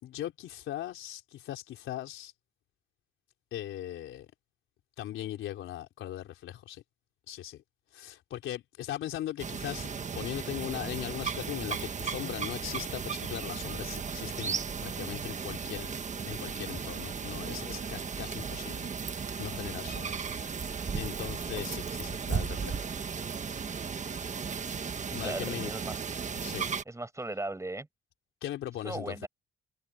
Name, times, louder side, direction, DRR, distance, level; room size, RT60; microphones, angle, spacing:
voice 1, 0.0-2.3 3.5-4.3 5.0-6.8 7.3-7.6 7.9-14.6 14.8-15.9 16.2-18.9 19.4-20.7 20.9-22.8 25.1-25.7 26.4-26.7 28.4-29.3, left 12 dB, 80° left, 4.1 m, -39 dB
sound 1, 9.4-26.8, right 6 dB, 40° right, 1.5 m, -35 dB
voice 2, 25.2-26.0 26.9-27.9 28.8-29.3, right 2 dB, 15° right, 7.0 m, -37 dB
cardioid pair, 90°, 20 cm